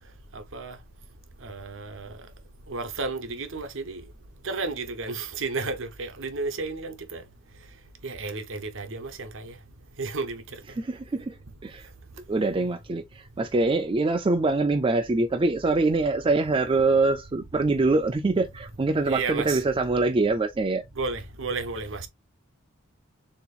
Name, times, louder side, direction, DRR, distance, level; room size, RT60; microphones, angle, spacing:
voice 1, 0.3-0.8 1.4-2.2 2.7-4.0 4.4-7.2 8.0-9.6 10.0-10.4 19.0-19.6 21.0-22.1, right 3 dB, 65° right, 0.9 m, -32 dB
voice 2, 10.8-11.4 11.6-11.9 12.3-20.8, right 3 dB, 25° right, 0.4 m, -24 dB
6.8 x 2.9 x 2.4 m
head